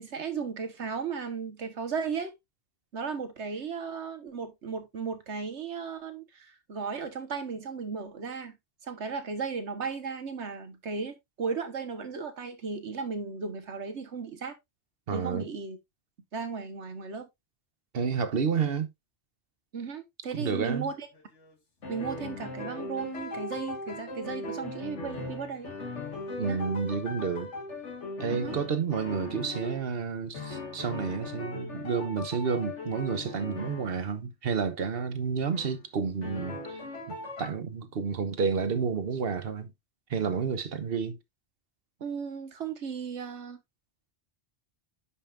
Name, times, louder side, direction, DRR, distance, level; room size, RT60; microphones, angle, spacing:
voice 1, 0.0-2.3 2.9-8.6 8.8-14.6 15.1-15.8 16.3-17.3 19.7-21.1 21.9-25.7 26.5-26.6 28.3-28.6 42.0-43.6, right 5 dB, 80° right, 1.5 m, -35 dB
voice 2, 15.1-15.5 17.9-18.9 20.3-20.9 26.4-27.5 28.2-36.8 37.1-39.7 40.1-41.2, right 6 dB, 60° right, 1.1 m, -30 dB
sound 1, 20.8-21.5 21.8-29.8 30.3-34.0 35.5-35.8 36.2-37.5, left 2 dB, 85° left, 2.0 m, -39 dB
9.9 x 5.5 x 2.5 m
omnidirectional pair, 1.2 m